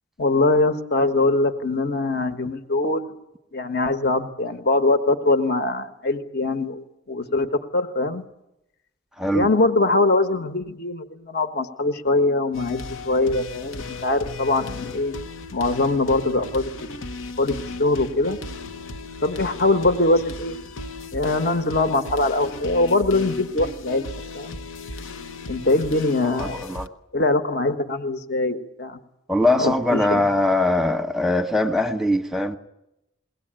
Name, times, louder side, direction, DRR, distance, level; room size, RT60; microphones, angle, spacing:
voice 1, 0.2-3.1 3.5-7.5 7.7-8.2 9.3-15.1 15.5-16.7 17.4-18.4 19.2-20.6 21.1-24.0 24.3-24.6 25.5-26.6 27.1-29.0 29.5-30.3, left 2 dB, 55° left, 1.4 m, -22 dB
voice 2, 9.2-9.5 26.4-26.9 29.3-32.6, left 1 dB, ahead, 1.0 m, -21 dB
sound 1, 12.5-26.9, left 2 dB, 85° left, 1.1 m, -36 dB
22.0 x 18.0 x 9.0 m
head